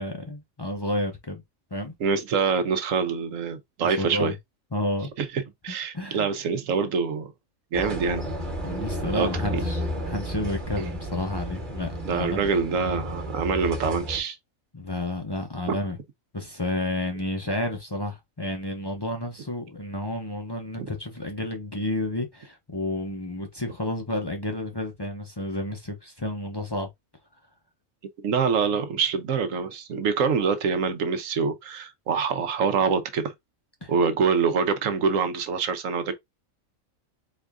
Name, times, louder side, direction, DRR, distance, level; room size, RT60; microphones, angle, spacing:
voice 1, 0.0-1.4 1.7-1.9 3.8-4.3 4.7-5.1 5.9-6.3 8.6-9.8 10.1-12.4 14.7-16.0 16.3-26.9 33.8-33.9, left 1 dB, 25° left, 0.5 m, -31 dB
voice 2, 2.0-4.3 5.2-7.3 7.7-8.2 9.1-9.6 10.8-10.9 12.0-14.4 15.7-15.8 28.2-33.3 33.9-36.1, right 5 dB, 75° right, 1.2 m, -25 dB
sound 1, 7.7-14.2, equal, 35° right, 1.4 m, -32 dB
4.4 x 2.5 x 3.4 m
omnidirectional pair, 1.4 m